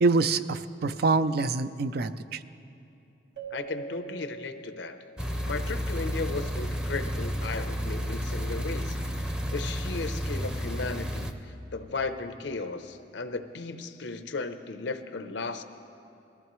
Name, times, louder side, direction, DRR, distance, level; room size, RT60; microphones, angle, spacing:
voice 1, 0.0-2.4, right 3 dB, 60° right, 12 dB, 0.4 m, -25 dB
Keyboard (musical), 3.4-5.8, right 5 dB, 80° right, 1.5 m, -43 dB
voice 2, 3.5-5.0 5.4-9.0 9.5-11.3 11.7-15.6, left 3 dB, 90° left, 9 dB, 0.7 m, -35 dB
sound 1, 5.2-11.3, equal, 5° right, 0.6 m, -31 dB
20.5 x 14.5 x 3.1 m, 2.8 s
head